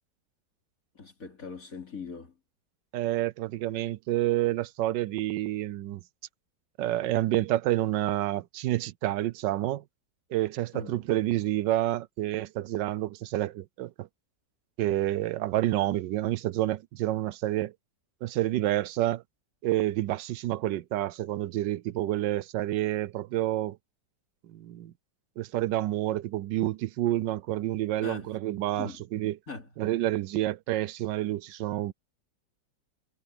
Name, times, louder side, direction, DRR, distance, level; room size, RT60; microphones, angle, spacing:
voice 1, 1.0-2.3 10.7-11.0 28.0-28.3 28.8-29.0 29.5-29.7, left 5 dB, 50° left, 3.6 m, -41 dB
voice 2, 2.9-6.0 6.8-9.8 10.3-14.1 14.8-17.7 18.2-19.2 19.6-23.8 24.5-24.9 25.4-29.4 29.8-31.9, right 14 dB, 85° right, 1.3 m, -29 dB
omnidirectional pair, 1.9 m